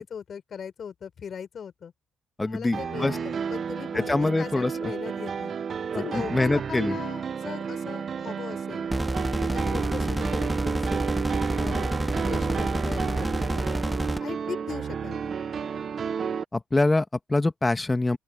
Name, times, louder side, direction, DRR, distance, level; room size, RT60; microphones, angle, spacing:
voice 1, 0.0-1.9 2.4-5.5 5.9-8.9 9.4-11.1 11.5-13.7 14.2-15.4, left 7 dB, 55° left, 4.8 m, -39 dB
voice 2, 2.4-3.2 3.9-4.9 5.9-7.0 16.5-18.2, left 2 dB, 15° left, 1.7 m, -25 dB
sound 1, 2.7-16.4, right 6 dB, 50° right, 1.0 m, -31 dB
sound 2, 8.9-14.2, right 1 dB, 10° right, 2.0 m, -28 dB
open air
cardioid pair, 90°, 0 cm